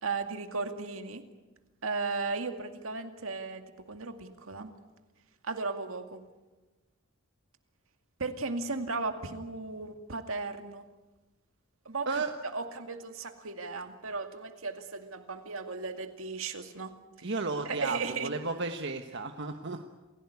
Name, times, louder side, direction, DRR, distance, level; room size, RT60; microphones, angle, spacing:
voice 1, 0.0-1.2 1.8-3.6 3.9-4.7 5.4-6.2 8.2-10.8 11.9-12.1 12.5-17.3 17.7-18.3, right 4 dB, 75° right, 7 dB, 2.3 m, -36 dB
voice 2, 17.2-19.9, right 3 dB, 60° right, 5 dB, 1.3 m, -33 dB
28.0 x 16.5 x 9.6 m, 1.2 s
head